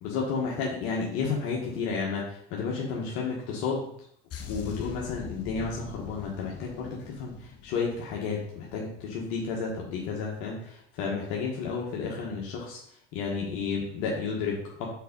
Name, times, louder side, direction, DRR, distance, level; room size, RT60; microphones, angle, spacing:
voice 1, 0.0-3.9 4.5-12.8 13.1-14.9, left 5 dB, 70° left, -2 dB, 1.4 m, -32 dB
sound 1, 4.3-8.9 9.1-9.4, left 7 dB, 50° left, 1.2 m, -42 dB
4.7 x 4.6 x 5.4 m, 0.69 s
hypercardioid pair, 70°, 30 cm